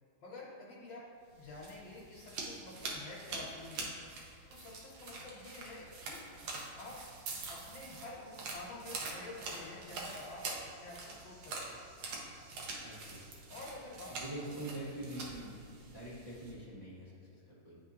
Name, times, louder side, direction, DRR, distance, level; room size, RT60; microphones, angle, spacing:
voice 1, 0.2-1.1 1.3-3.9 4.5-6.2 6.8-7.0 7.5-11.8 13.5-14.2 14.4-14.8, left 2 dB, 65° left, -5 dB, 1.8 m, -49 dB
sound 1, 1.3-16.5, right 3 dB, 75° right, 1.7 m, -45 dB
voice 2, 12.8-13.3 14.1-17.8, right 1 dB, 30° right, -11 dB, 1.1 m, -45 dB
10.5 x 3.6 x 2.8 m, 2.4 s
omnidirectional pair, 2.3 m